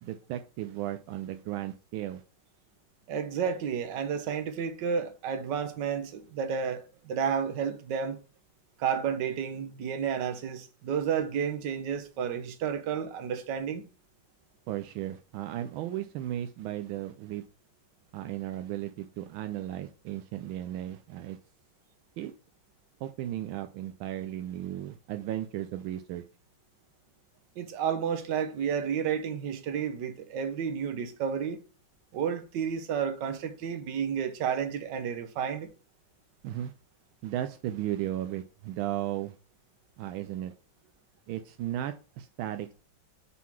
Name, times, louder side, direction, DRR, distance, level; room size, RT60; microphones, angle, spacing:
voice 1, 0.0-2.2 14.7-17.4 18.1-21.4 22.2-22.3 23.0-26.2 36.4-36.7 37.2-39.4 40.0-40.5 41.3-42.7, right 13 dB, 85° right, 1.4 m, -35 dB
voice 2, 3.1-8.2 8.8-13.8 27.6-31.6 32.1-35.7, right 7 dB, 65° right, 1.5 m, -31 dB
6.1 x 3.8 x 5.8 m
omnidirectional pair, 2.2 m